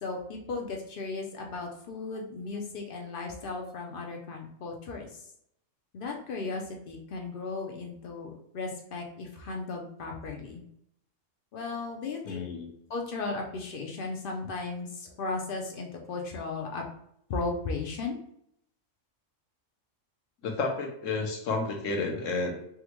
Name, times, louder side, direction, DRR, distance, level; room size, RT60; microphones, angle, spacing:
voice 1, 0.0-5.2 5.9-10.6 11.5-12.4 12.9-16.8 17.3-18.2, left 3 dB, 60° left, 1 dB, 0.6 m, -36 dB
voice 2, 12.2-12.7 20.4-22.5, left 3 dB, 80° left, 2 dB, 1.1 m, -31 dB
3.5 x 2.1 x 2.9 m, 0.72 s
omnidirectional pair, 1.3 m